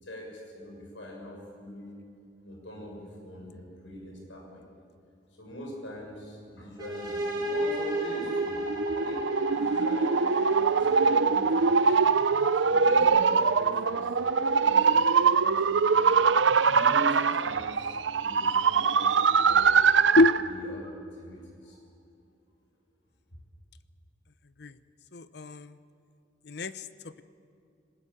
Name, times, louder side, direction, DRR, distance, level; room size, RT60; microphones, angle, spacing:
voice 1, 0.0-2.0 2.4-4.7 5.3-8.6 8.9-12.1 12.6-14.1 14.4-16.2 16.6-19.7 20.4-21.8, equal, 90° left, -1 dB, 6.6 m, -42 dB
sound 1, 6.8-14.4, right 1 dB, 25° right, 6.0 m, -35 dB
sound 2, 7.8-20.5, right 5 dB, 75° right, 0.7 m, -23 dB
voice 2, 25.1-25.8 26.4-27.2, left 2 dB, 65° left, 14 dB, 0.8 m, -26 dB
21.5 x 19.5 x 8.9 m, 2.4 s
head